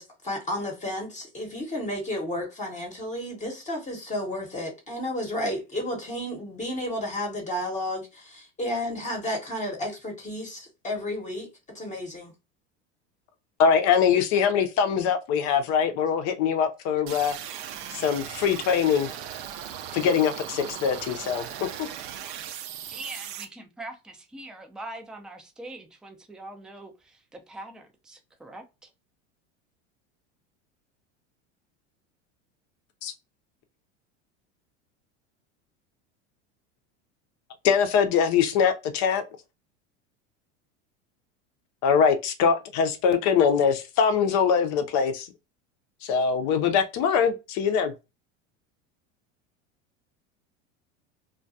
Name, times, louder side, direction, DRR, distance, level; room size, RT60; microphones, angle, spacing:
voice 1, 0.0-11.5 11.7-12.3, left 1 dB, 20° left, 0.8 m, -32 dB
voice 2, 13.6-17.3 17.9-19.1 19.9-21.4 21.8-21.9 33.0-33.1 37.6-39.2 41.8-45.3 46.0-47.9, left 7 dB, 50° left, 0.5 m, -23 dB
sound 1, 17.1-23.4, right 10 dB, 55° right, 0.5 m, -38 dB
voice 3, 22.9-28.9, right 2 dB, ahead, 0.4 m, -43 dB
2.2 x 2.2 x 2.6 m
supercardioid pair, 100°, 35 cm